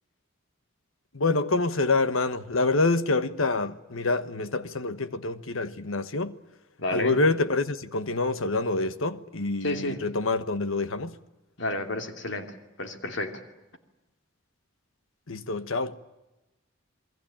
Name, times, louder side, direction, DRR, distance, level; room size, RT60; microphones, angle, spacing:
voice 1, 1.1-6.4 6.9-11.2 15.3-15.9, left 3 dB, 80° left, 1.3 m, -26 dB
voice 2, 6.8-7.2 9.6-10.0 11.6-13.4, left 1 dB, 60° left, 2.8 m, -31 dB
28.0 x 21.5 x 8.8 m
head